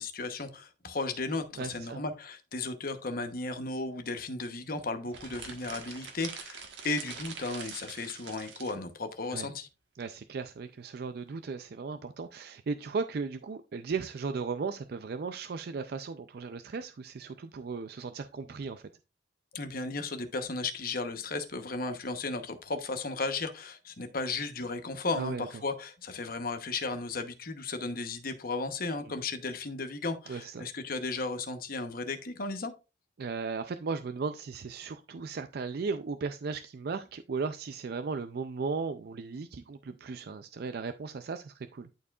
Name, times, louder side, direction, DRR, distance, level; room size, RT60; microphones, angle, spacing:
voice 1, 0.0-9.7 19.5-32.7, left 3 dB, 55° left, 1.0 m, -35 dB
voice 2, 1.6-2.0 9.3-9.5 10.0-18.8 25.2-25.5 30.3-30.7 33.2-41.9, right 4 dB, 60° right, 0.4 m, -36 dB
sound 1, 5.1-8.8, right 6 dB, 75° right, 1.4 m, -44 dB
11.0 x 4.6 x 2.4 m
head